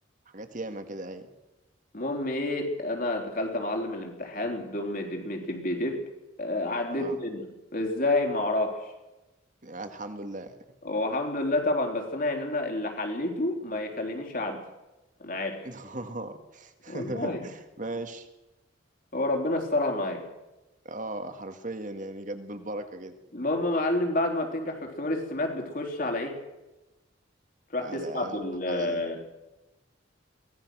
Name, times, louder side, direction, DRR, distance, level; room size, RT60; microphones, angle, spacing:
voice 1, 0.3-1.3 6.9-7.2 9.6-10.6 15.6-18.3 20.8-23.2 27.8-28.4 28.7-29.0, right 2 dB, 40° right, 7 dB, 2.1 m, -37 dB
voice 2, 1.9-6.0 6.4-8.9 10.8-14.6 15.2-15.7 16.9-17.4 19.1-20.3 23.3-26.4 27.7-29.2, left 2 dB, 45° left, 3 dB, 3.8 m, -29 dB
23.5 x 18.0 x 6.3 m, 1.0 s
head